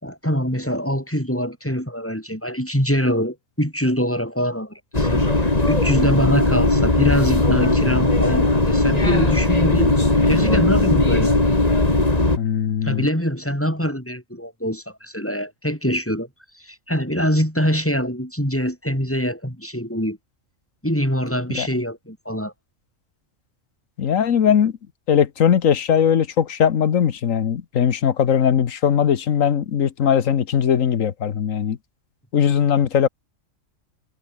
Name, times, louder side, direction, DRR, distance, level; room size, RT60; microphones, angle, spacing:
voice 1, 0.0-5.2 5.7-10.0 10.3-11.4 12.8-16.3 16.5-20.2 20.8-22.5, equal, 10° left, 7.8 m, -24 dB
sound 1, 4.9-12.4, left 2 dB, 30° left, 2.9 m, -18 dB
voice 2, 12.4-13.1 21.6-21.7 24.0-24.7 25.1-31.8 32.3-33.1, left 8 dB, 85° left, 1.5 m, -19 dB
omnidirectional pair, 1.3 m